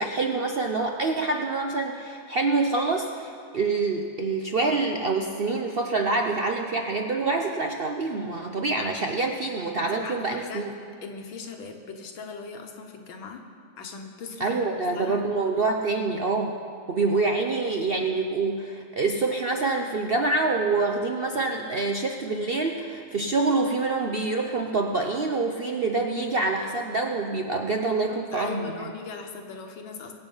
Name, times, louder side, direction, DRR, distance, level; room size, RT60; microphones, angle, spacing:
voice 1, 0.0-10.7 14.4-16.5 16.9-28.9, right 3 dB, 80° right, 3 dB, 0.5 m, -26 dB
voice 2, 9.8-10.7 11.0-13.4 13.8-15.2 28.1-30.1, left 4 dB, 85° left, 4 dB, 2.1 m, -40 dB
23.0 x 7.9 x 5.5 m, 2.2 s
omnidirectional pair, 2.1 m